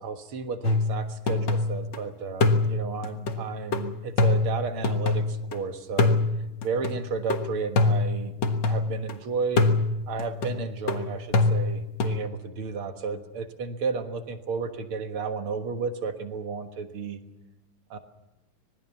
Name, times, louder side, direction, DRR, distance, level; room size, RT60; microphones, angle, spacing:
voice 1, 0.0-6.1 6.6-8.4 8.6-17.2 17.9-18.0, right 5 dB, 50° right, 7 dB, 2.0 m, -33 dB
sound 1, 0.6-2.0 2.4-5.6 6.0-9.1 9.6-12.2, left 3 dB, 45° left, 1.6 m, -25 dB
25.5 x 20.5 x 7.1 m, 0.98 s
omnidirectional pair, 3.6 m